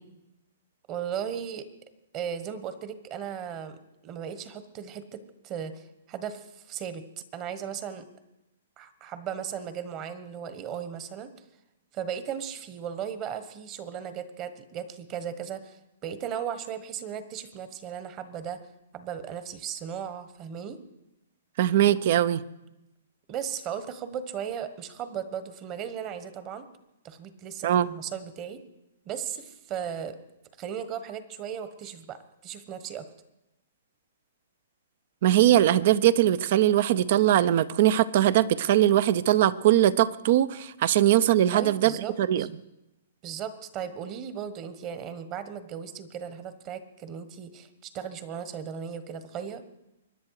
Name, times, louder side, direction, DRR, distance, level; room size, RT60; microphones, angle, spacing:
voice 1, 0.9-1.7 2.1-3.8 4.0-7.0 7.3-8.1 8.8-11.3 11.9-18.6 18.9-20.8 23.3-26.7 27.0-28.6 29.0-30.2 30.6-32.2 32.4-33.1 41.5-42.5 43.2-49.6, right 8 dB, 30° right, 12 dB, 1.3 m, -36 dB
voice 2, 21.6-22.4 27.6-27.9 35.2-42.5, right 12 dB, 50° right, 18 dB, 0.7 m, -21 dB
24.5 x 10.5 x 4.9 m, 0.91 s
hypercardioid pair, 145°, 0 cm